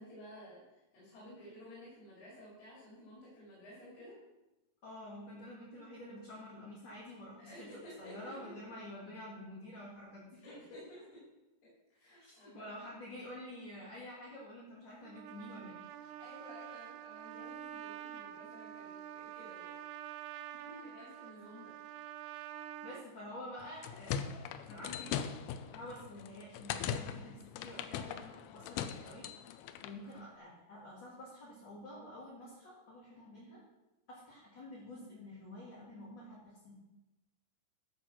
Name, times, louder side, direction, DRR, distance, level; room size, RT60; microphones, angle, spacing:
voice 1, 0.0-4.2 7.4-8.6 10.4-11.2 11.6-12.9 16.1-19.7 20.5-21.7, left 1 dB, 60° left, -8 dB, 6.1 m, -53 dB
voice 2, 4.8-7.7 8.0-10.6 12.2-15.8 20.7-21.1 21.4-21.5 22.8-29.3 29.8-33.6 34.1-36.7, left 1 dB, 30° left, -7 dB, 3.2 m, -49 dB
Trumpet, 15.0-23.0, right 12 dB, 90° right, 2.8 m, -47 dB
sound 1, 23.6-30.0, left 9 dB, 85° left, 2.5 m, -40 dB
13.5 x 8.2 x 6.1 m, 1.0 s
omnidirectional pair, 4.7 m